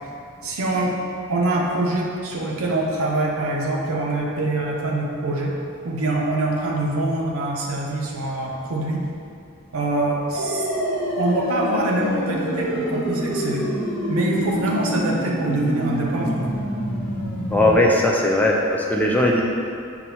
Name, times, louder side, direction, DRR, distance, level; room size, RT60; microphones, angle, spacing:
voice 1, 0.4-1.0 1.3-5.5 5.8-9.0 9.7-10.7 11.2-13.7 14.1-16.4, right 2 dB, 80° right, -2 dB, 0.6 m, -24 dB
sound 1, 10.3-17.7, equal, 80° left, 0.9 m, -26 dB
voice 2, 17.5-19.4, left 1 dB, 10° left, -1 dB, 0.3 m, -18 dB
5.9 x 2.2 x 2.7 m, 2.5 s
head